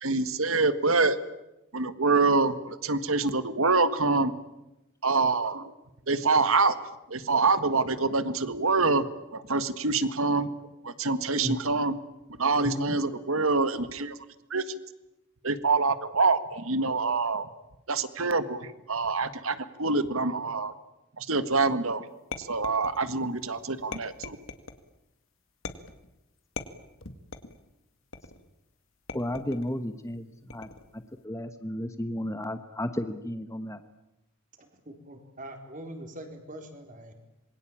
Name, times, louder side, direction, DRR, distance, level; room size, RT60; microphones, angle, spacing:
voice 1, 0.0-1.2 1.7-4.3 5.0-5.7 6.1-6.8 7.1-9.1 9.3-10.5 10.8-12.0 12.4-14.2 14.5-14.6 15.4-17.5 17.9-20.7 21.2-22.1 22.4-24.4, right 3 dB, 70° right, 13 dB, 1.8 m, -25 dB
voice 2, 12.6-13.0 29.1-33.8, left 1 dB, 15° left, 9 dB, 1.1 m, -33 dB
sound 1, 22.3-23.2 23.9-24.8 25.6-26.1 26.6-27.6 28.1-28.5 29.1-29.7 30.5-31.0, left 3 dB, 60° left, 2.2 m, -40 dB
voice 3, 34.6-37.1, right 1 dB, 35° right, 5 dB, 4.3 m, -43 dB
26.5 x 22.5 x 8.8 m, 0.94 s
head